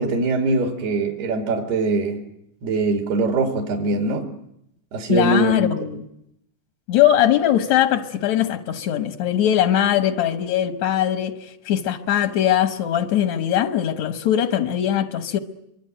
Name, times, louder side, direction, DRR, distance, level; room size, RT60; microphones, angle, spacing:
voice 1, 0.0-2.2 2.6-4.3 4.9-5.7, right 3 dB, 65° right, 4.3 m, -22 dB
voice 2, 5.1-6.0 6.9-15.4, left 11 dB, 70° left, 1.7 m, -20 dB
26.0 x 24.0 x 9.0 m
omnidirectional pair, 4.9 m